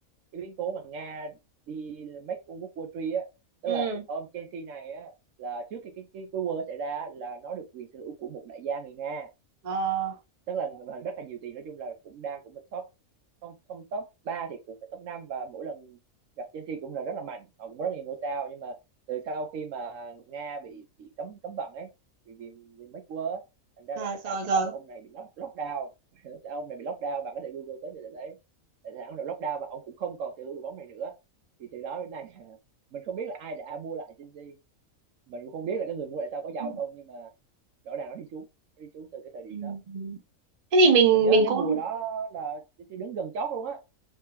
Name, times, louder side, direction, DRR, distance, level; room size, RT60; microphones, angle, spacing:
voice 1, 0.3-1.4 1.7-3.3 3.6-5.1 5.4-9.3 10.5-12.9 13.4-16.0 16.4-18.8 19.1-21.9 22.3-23.4 23.8-28.4 28.8-31.2 31.6-32.6 32.9-34.6 35.3-37.3 37.8-38.5 38.8-39.8 41.2-42.6 42.9-43.8, right 6 dB, 70° right, 0.9 m, -36 dB
voice 2, 3.7-4.0 9.7-10.1 24.0-24.7 36.6-36.8 39.5-40.2 40.7-41.8, right 4 dB, 35° right, 0.7 m, -23 dB
3.4 x 3.2 x 2.8 m
omnidirectional pair, 1.5 m